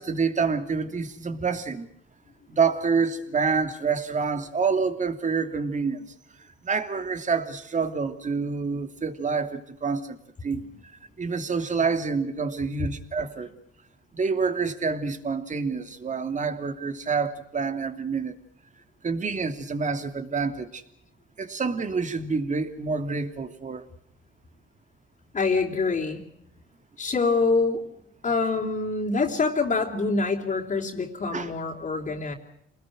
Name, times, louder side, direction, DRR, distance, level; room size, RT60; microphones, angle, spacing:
voice 1, 0.0-1.9 2.5-6.1 6.6-10.2 10.4-10.7 11.2-13.5 14.1-18.4 19.0-20.8 21.4-23.8 31.3-31.5, right 5 dB, 40° right, 9 dB, 2.8 m, -27 dB
voice 2, 25.3-26.2 27.0-27.8 28.2-32.3, left 4 dB, 40° left, -3 dB, 3.7 m, -25 dB
28.0 x 20.0 x 6.2 m, 0.75 s
cardioid pair, 90°, 20 cm